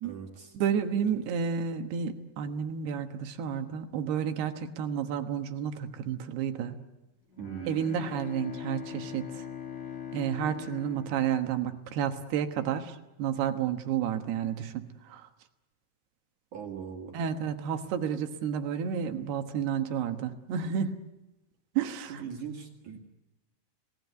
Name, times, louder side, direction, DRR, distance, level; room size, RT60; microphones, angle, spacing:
voice 1, 0.0-0.6 1.1-1.2 7.4-7.8 16.5-17.2 22.1-23.0, right 7 dB, 55° right, 2 dB, 3.2 m, -40 dB
voice 2, 0.5-6.8 7.7-9.5 10.1-15.3 17.1-21.0 21.8-22.2, right 8 dB, 80° right, 7 dB, 3.4 m, -31 dB
Bowed string instrument, 7.3-12.2, left 8 dB, 45° left, 4.2 m, -42 dB
29.0 x 18.5 x 8.2 m, 1.0 s
omnidirectional pair, 4.7 m